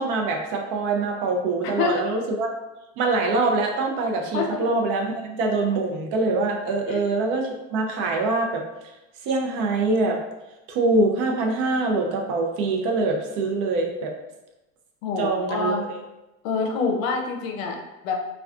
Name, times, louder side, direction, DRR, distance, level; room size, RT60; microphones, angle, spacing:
voice 1, 0.0-2.5 3.0-8.7 9.2-10.2 10.7-14.1 15.2-15.8, right 3 dB, 50° right, 2 dB, 0.6 m, -24 dB
voice 2, 1.6-2.0 4.3-4.7 6.9-7.0 15.0-15.8 16.4-18.2, left 5 dB, 75° left, 3 dB, 0.6 m, -26 dB
2.3 x 2.3 x 2.3 m, 1.0 s
supercardioid pair, 115°, 41 cm